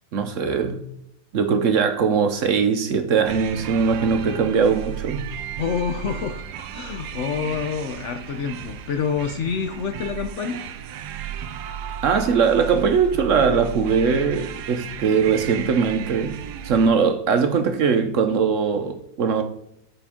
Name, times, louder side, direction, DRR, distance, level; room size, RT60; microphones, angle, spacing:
voice 1, 0.1-0.8 1.3-5.3 12.0-16.4 16.6-19.4, right 6 dB, 60° right, 0.9 m, -21 dB
sound 1, 3.2-16.9, right 7 dB, 90° right, 1.2 m, -34 dB
voice 2, 5.6-6.5 6.7-10.6, left 6 dB, 65° left, 0.7 m, -27 dB
7.3 x 5.3 x 3.5 m
omnidirectional pair, 1.7 m